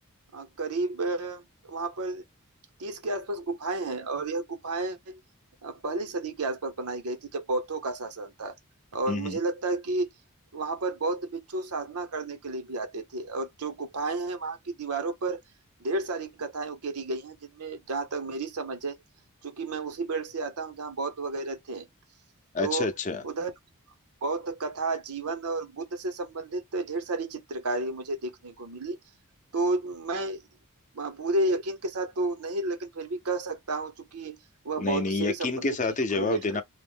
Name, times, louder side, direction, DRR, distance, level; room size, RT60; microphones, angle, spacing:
voice 1, 0.3-2.2 2.8-5.2 5.6-8.5 8.9-10.1 10.5-15.4 15.8-19.0 19.4-21.9 22.6-22.9 23.2-23.5 24.2-29.0 29.5-30.4 30.9-34.4 34.6-35.7 36.1-36.6, right 2 dB, 90° right, 0.8 m, -32 dB
voice 2, 9.1-9.4 22.5-23.2 34.8-36.6, left 3 dB, 35° left, 0.6 m, -28 dB
3.0 x 2.1 x 3.4 m
head